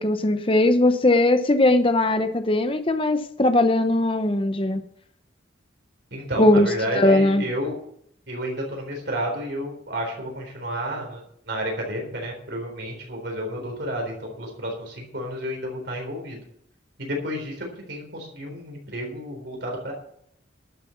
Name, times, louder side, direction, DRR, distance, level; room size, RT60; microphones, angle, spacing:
voice 1, 0.0-4.8 6.4-6.7 6.9-7.5, left 1 dB, 25° left, 8 dB, 0.9 m, -19 dB
voice 2, 6.1-7.8 8.3-16.4 17.0-19.9, equal, 60° right, 1 dB, 3.8 m, -31 dB
12.0 x 7.7 x 7.0 m, 0.69 s
head